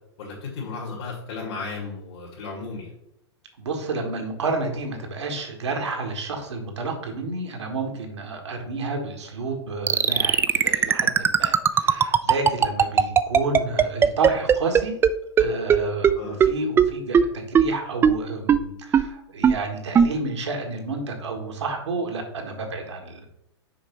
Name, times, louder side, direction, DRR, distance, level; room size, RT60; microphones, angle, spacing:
voice 1, 0.2-2.9 16.1-16.4, left 4 dB, 65° left, -4 dB, 2.3 m, -34 dB
voice 2, 3.6-15.0 15.4-23.3, right 3 dB, 80° right, 3 dB, 1.6 m, -30 dB
sound 1, 9.9-15.1 15.4-15.5 15.7-15.8 16.0-16.1 16.4-16.5 16.8-16.9 17.1-17.2 17.5-17.6 18.0-18.1 18.5-18.6 18.9-19.0 19.4-19.5 19.9-20.1, right 7 dB, 15° right, 0.3 m, -16 dB
6.2 x 4.9 x 4.5 m, 0.75 s
hypercardioid pair, 105°, 15 cm